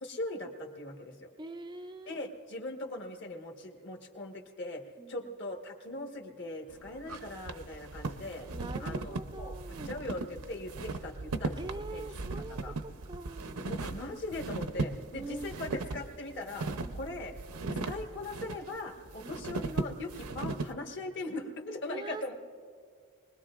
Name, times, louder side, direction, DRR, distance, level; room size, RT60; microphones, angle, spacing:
voice 1, 0.0-1.3 2.1-4.8 5.1-8.5 8.8-11.6 11.9-12.1 12.5-12.7 13.7-16.7 16.9-17.3 17.7-22.3, left 2 dB, 55° left, 2 dB, 1.4 m, -40 dB
voice 2, 1.4-2.2 5.0-5.3 5.9-6.1 8.5-10.0 11.6-13.9 15.1-15.7 16.6-17.0 19.2-19.6 21.9-22.2, right 2 dB, 20° right, 9 dB, 0.4 m, -44 dB
sound 1, 6.7-20.7, right 3 dB, 90° right, 0.7 m, -38 dB
24.5 x 20.0 x 2.5 m, 2.2 s
head